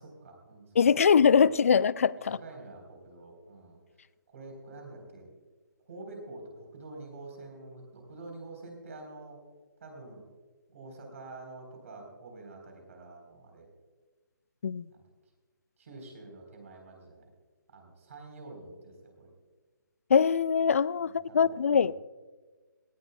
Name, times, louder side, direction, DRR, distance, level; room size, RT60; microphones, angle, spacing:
voice 1, 0.0-1.7 2.2-3.8 4.3-5.3 5.9-9.4 9.8-10.2 10.7-13.7 14.9-15.1 15.8-17.3 17.7-19.3 21.0-21.9, right 2 dB, 40° right, 3.9 m, -47 dB
voice 2, 0.8-2.4 14.6-14.8 20.1-21.9, left 6 dB, 40° left, 0.3 m, -23 dB
17.5 x 16.5 x 2.3 m
figure-of-eight pair, 145°, 11 cm